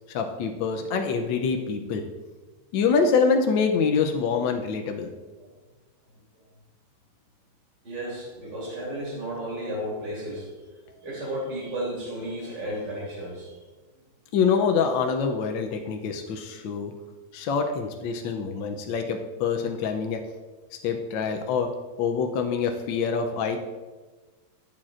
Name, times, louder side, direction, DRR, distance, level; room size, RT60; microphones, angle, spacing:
voice 1, 0.1-2.0 2.7-5.1 14.3-16.9 17.3-20.2 20.8-21.7 22.0-23.6, left 5 dB, 75° left, 4 dB, 1.3 m, -25 dB
voice 2, 7.8-13.6, right 1 dB, 55° right, -5 dB, 3.6 m, -34 dB
12.5 x 7.7 x 2.5 m, 1.3 s
omnidirectional pair, 2.2 m